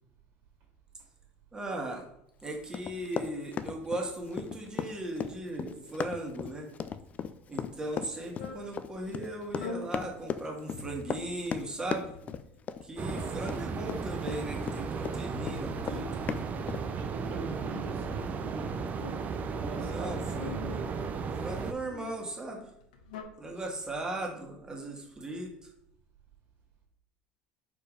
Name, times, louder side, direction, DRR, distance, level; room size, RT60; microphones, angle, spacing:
voice 1, 1.5-2.1 2.4-6.7 7.5-12.1 12.8-16.1 19.7-20.9 21.4-22.7 23.4-25.7, right 1 dB, 15° right, 0 dB, 1.9 m, -38 dB
Run, 2.7-15.2 15.4-16.8, left 7 dB, 35° left, 0.5 m, -36 dB
sound 1, 8.3-8.7 9.4-9.9 10.7-11.2 11.8-12.5 13.4-14.6 15.1-16.1 16.9-17.9 18.6-19.3 20.2-20.8 21.5-22.2 22.8-23.2, left 5 dB, 85° left, 1.0 m, -45 dB
sound 2, 13.0-21.7, right 5 dB, 40° right, 0.7 m, -35 dB
voice 2, 17.0-18.8 19.6-20.2, right 3 dB, 60° right, 0 dB, 2.2 m, -42 dB
4.7 x 4.7 x 5.1 m, 0.72 s
supercardioid pair, 95°, 4 cm